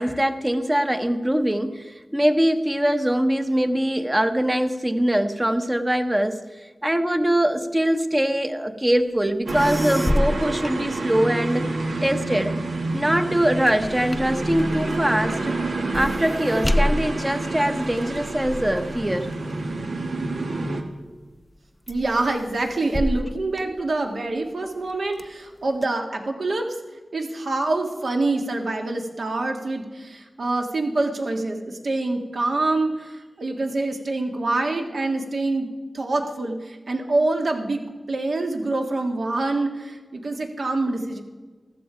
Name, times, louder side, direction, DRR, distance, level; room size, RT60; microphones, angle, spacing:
voice 1, 0.0-6.4 6.8-11.7 12.0-12.6 12.9-15.6 15.9-19.3, right 1 dB, 15° right, 7 dB, 0.9 m, -22 dB
sound 1, 9.2-9.3 9.5-11.6 12.0-20.7 21.2-21.6 21.9-24.4 24.8-25.8, left 1 dB, 15° left, 0.5 m, -30 dB
sound 2, 9.5-20.8, right 2 dB, 80° right, 1.5 m, -28 dB
voice 2, 21.9-26.7 27.1-35.7 35.9-41.2, right 2 dB, 65° right, 3 dB, 1.8 m, -26 dB
14.5 x 13.0 x 5.0 m, 1.3 s
wide cardioid pair, 90°, 0 cm